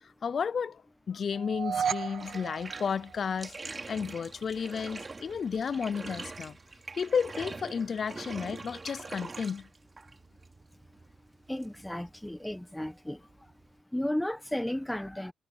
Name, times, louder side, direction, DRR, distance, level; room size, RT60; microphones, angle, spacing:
voice 1, 0.2-0.8 1.1-6.6 7.0-9.7, left 6 dB, 45° left, 0.5 m, -32 dB
sound 1, 1.3-3.6, right 7 dB, 50° right, 1.8 m, -34 dB
Bathtub (filling or washing), 2.1-13.8, right 3 dB, 25° right, 3.1 m, -45 dB
voice 2, 11.5-13.2 13.9-15.3, left 1 dB, 5° left, 1.1 m, -33 dB
cardioid pair, 90°, 0 cm